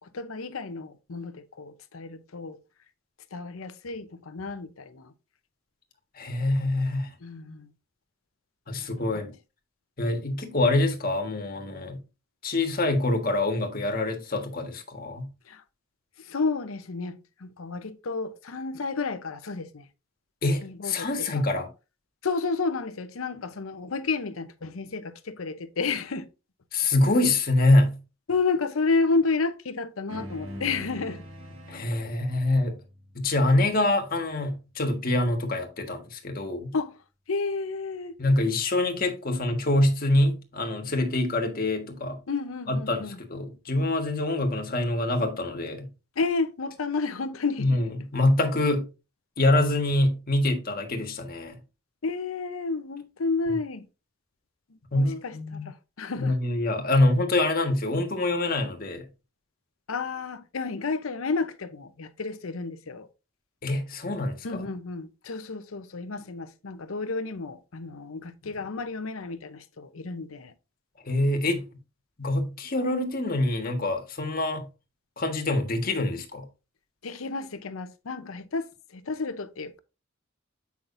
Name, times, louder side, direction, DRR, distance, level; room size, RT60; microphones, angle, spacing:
voice 1, 0.1-2.6 3.3-5.1 7.2-7.7 8.8-9.3 15.5-15.6 16.2-19.9 20.6-21.5 22.2-26.3 28.3-31.2 36.7-37.0 37.3-38.1 42.3-43.2 46.2-47.8 52.0-53.9 54.9-55.4 55.6-56.4 59.9-63.1 64.4-70.5 77.0-79.8, left 4 dB, 90° left, 0.8 m, -31 dB
voice 2, 6.2-7.1 8.7-9.3 10.0-12.0 12.4-15.3 20.4-21.7 26.7-28.0 31.7-32.8 33.1-36.7 38.2-42.2 42.7-45.9 47.6-48.9 49.4-51.6 54.9-55.7 56.2-59.0 63.6-64.6 71.0-71.7 72.2-74.7 75.2-76.5, left 2 dB, 45° left, 1.5 m, -25 dB
sound 1, 30.1-34.8, equal, 85° right, 1.3 m, -44 dB
8.4 x 5.8 x 2.6 m
head